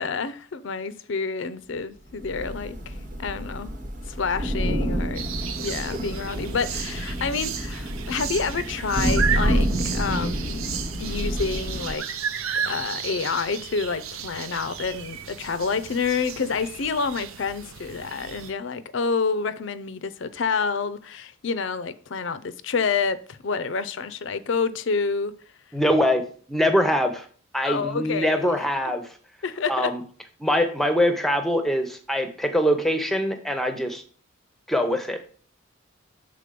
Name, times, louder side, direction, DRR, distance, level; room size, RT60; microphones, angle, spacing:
voice 1, 0.0-2.9 3.2-3.7 4.1-5.3 5.6-12.0 12.7-25.3 27.6-28.5 29.4-29.9, left 5 dB, 60° left, 0.5 m, -28 dB
Thunder / Rain, 2.2-12.0, equal, 40° right, 1.1 m, -28 dB
sound 1, 5.2-18.5, right 7 dB, 85° right, 0.7 m, -33 dB
voice 2, 25.7-26.2 26.5-27.2 27.5-29.0 29.7-30.0 30.4-34.0 34.7-35.2, equal, ahead, 0.7 m, -23 dB
6.7 x 3.9 x 5.0 m
head